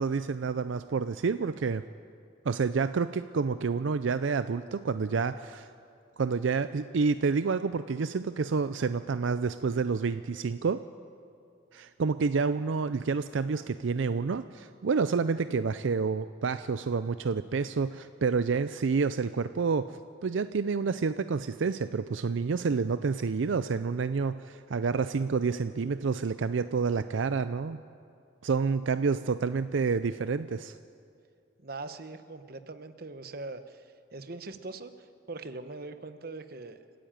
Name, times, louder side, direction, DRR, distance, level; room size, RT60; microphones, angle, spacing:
voice 1, 0.0-1.8 2.5-5.7 6.2-10.8 11.7-27.8 28.4-30.8, right 5 dB, 75° right, 12 dB, 0.5 m, -29 dB
voice 2, 31.6-36.8, right 3 dB, 50° right, 10 dB, 1.0 m, -42 dB
30.0 x 10.0 x 8.9 m, 2.4 s
head